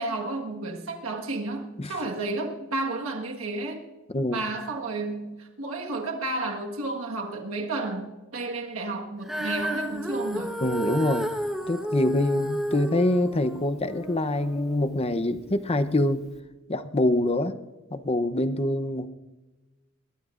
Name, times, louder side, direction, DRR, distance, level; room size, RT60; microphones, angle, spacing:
voice 1, 0.0-3.8 4.3-10.6, right 2 dB, 65° right, 2 dB, 1.5 m, -32 dB
Female singing, 9.2-15.6 16.3-16.4, right 1 dB, ahead, 1.2 m, -32 dB
voice 2, 10.6-11.3 11.7-16.2 16.7-17.6 17.9-19.1, left 1 dB, 30° left, 10 dB, 0.7 m, -25 dB
21.0 x 21.0 x 2.5 m, 1.1 s
head